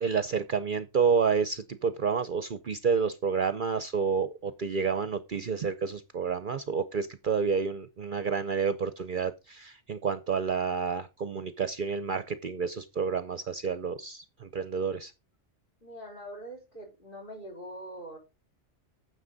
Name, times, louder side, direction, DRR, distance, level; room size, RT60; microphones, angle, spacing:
voice 1, 0.0-15.1, right 6 dB, 50° right, 0.8 m, -29 dB
voice 2, 15.8-18.2, right 1 dB, 50° left, 4.3 m, -43 dB
9.6 x 7.2 x 4.0 m
omnidirectional pair, 1.2 m